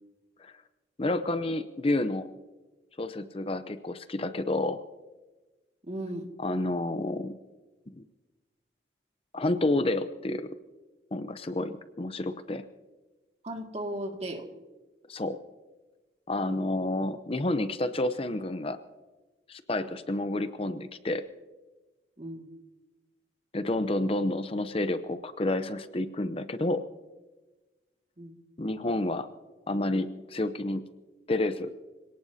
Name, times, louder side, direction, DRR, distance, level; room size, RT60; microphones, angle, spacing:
voice 1, 1.0-2.3 3.0-4.8 6.4-7.4 7.9-8.0 9.3-10.5 11.1-12.6 15.1-15.4 16.3-18.8 19.5-21.2 23.5-26.8 28.6-29.3 29.7-30.8 31.3-31.9, left 2 dB, 30° left, 11 dB, 0.7 m, -30 dB
voice 2, 5.8-6.3 13.4-14.5 16.5-16.8 22.2-22.5 28.2-28.4, right 1 dB, 35° right, 3 dB, 2.1 m, -36 dB
26.0 x 18.0 x 2.8 m, 1.2 s
head